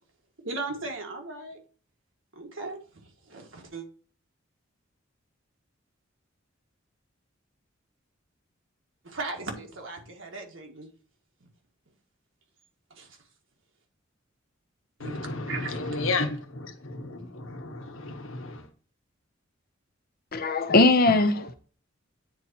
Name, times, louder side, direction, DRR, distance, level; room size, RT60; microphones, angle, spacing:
voice 1, 0.4-1.6 2.3-3.9 9.0-10.9 12.9-13.2 15.0-15.2 15.5-16.1, right 3 dB, 70° right, 1.7 m, -37 dB
voice 2, 15.0-18.7, left 3 dB, 80° left, 1.1 m, -33 dB
voice 3, 20.3-21.5, left 2 dB, 50° left, 0.8 m, -20 dB
9.5 x 4.3 x 2.8 m
head